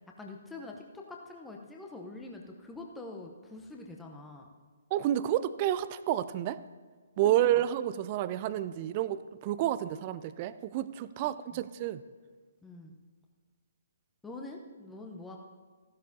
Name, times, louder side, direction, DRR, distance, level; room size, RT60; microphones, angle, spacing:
voice 1, 0.2-4.5 7.2-7.7 9.6-9.7 11.2-11.6 12.6-13.0 14.2-15.4, left 2 dB, 5° left, 0 dB, 0.8 m, -45 dB
voice 2, 4.9-6.6 7.2-12.0, right 12 dB, 30° right, 15 dB, 0.4 m, -30 dB
15.0 x 11.5 x 2.8 m, 1.5 s
figure-of-eight pair, 130°, 0 cm